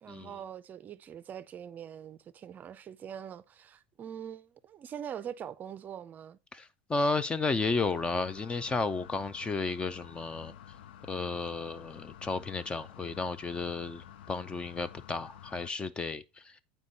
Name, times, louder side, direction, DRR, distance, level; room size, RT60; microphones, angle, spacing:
voice 1, 0.0-6.4, right 9 dB, 30° right, 0.5 m, -43 dB
voice 2, 6.5-10.5 11.1-16.6, left 4 dB, 20° left, 0.5 m, -33 dB
sound 1, 7.6-15.7, left 10 dB, 85° left, 0.5 m, -50 dB
8.4 x 4.5 x 4.0 m
supercardioid pair, 110°, 5 cm